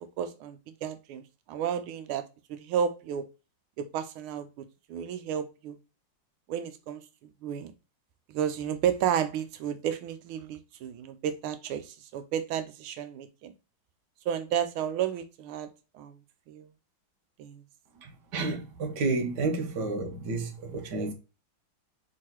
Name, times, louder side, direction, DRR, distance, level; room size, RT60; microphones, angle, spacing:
voice 1, 0.0-1.2 1.5-2.2 2.5-3.3 3.8-5.8 6.5-7.0 7.4-7.7 8.3-13.5 14.3-15.7 15.9-16.1 16.5-16.7 17.4-17.6, right 9 dB, 90° right, 1.5 m, -32 dB
voice 2, 18.3-21.1, right 3 dB, 60° right, 1.5 m, -30 dB
4.7 x 3.9 x 2.9 m
omnidirectional pair, 2.3 m